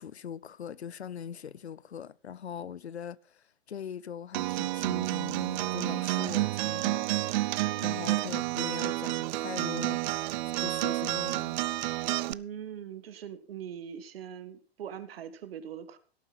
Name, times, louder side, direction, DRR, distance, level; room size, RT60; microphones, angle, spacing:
voice 1, 0.0-11.6, left 8 dB, 85° left, 0.6 m, -41 dB
Acoustic guitar, 4.3-12.3, right 17 dB, 45° right, 0.6 m, -30 dB
voice 2, 12.3-16.0, right 9 dB, 65° right, 1.8 m, -41 dB
17.0 x 9.1 x 4.1 m
figure-of-eight pair, 105°, 32 cm